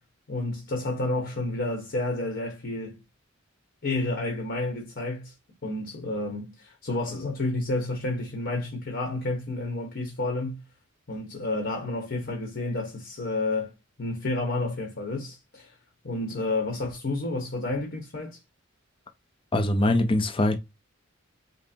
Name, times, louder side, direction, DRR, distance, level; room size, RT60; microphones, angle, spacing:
voice 1, 0.3-3.0 3.8-5.3 5.6-10.6 11.1-13.7 14.0-15.7 16.0-18.4, left 2 dB, 55° left, 1.0 m, -30 dB
voice 2, 19.5-20.6, left 1 dB, 25° left, 0.5 m, -22 dB
5.3 x 2.0 x 2.7 m
head